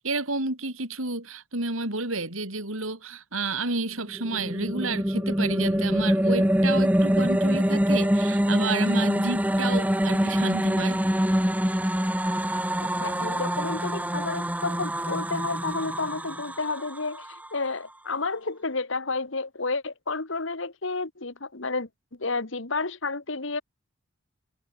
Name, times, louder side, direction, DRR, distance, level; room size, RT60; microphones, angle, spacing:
voice 1, 0.0-11.0, right 3 dB, 75° right, 6.4 m, -31 dB
sound 1, 4.1-17.5, equal, 5° right, 3.0 m, -25 dB
voice 2, 12.8-17.3 17.5-21.9 22.2-23.6, left 3 dB, 60° left, 1.7 m, -31 dB
head